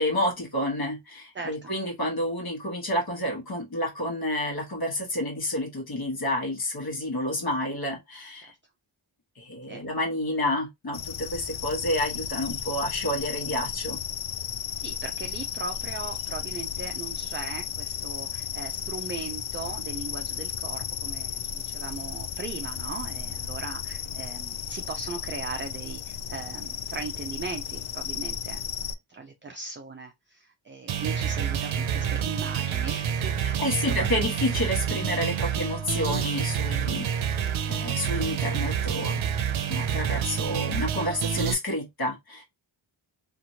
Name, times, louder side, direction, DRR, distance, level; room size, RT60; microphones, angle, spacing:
voice 1, 0.0-8.5 9.4-14.0 33.4-39.2 39.7-42.4, left 1 dB, 50° left, 1.3 m, -29 dB
voice 2, 1.3-1.7 9.7-9.8 14.8-28.6 29.1-34.1, right 4 dB, 25° right, 0.4 m, -38 dB
sound 1, 10.9-28.9, left 8 dB, 80° left, 0.5 m, -34 dB
sound 2, 30.9-41.5, right 8 dB, 80° right, 0.6 m, -28 dB
2.9 x 2.5 x 2.8 m
wide cardioid pair, 90°, 47 cm